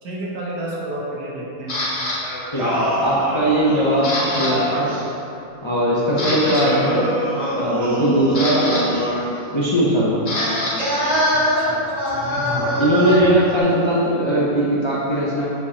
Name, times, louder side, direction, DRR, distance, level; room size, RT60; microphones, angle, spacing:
voice 1, 0.0-1.9 6.6-6.8 10.6-10.9 11.3-11.8 12.1-12.9, right 1 dB, 85° right, -5 dB, 1.6 m, -32 dB
Camera, 1.7-2.2 2.8-3.1 3.4-4.5 4.8-5.0 5.5-5.6 6.0-6.6 7.8-10.7 11.0-13.6, left 1 dB, 90° left, 2.1 m, -27 dB
Singing, 2.2-5.0 6.1-9.3 10.3-13.4, equal, 45° right, 1.7 m, -24 dB
voice 2, 2.5-4.9 5.6-7.1 7.6-8.9 9.5-10.3 12.4-15.4, right 1 dB, 30° left, -7 dB, 0.5 m, -19 dB
7.3 x 4.7 x 2.9 m, 2.8 s
omnidirectional pair, 1.6 m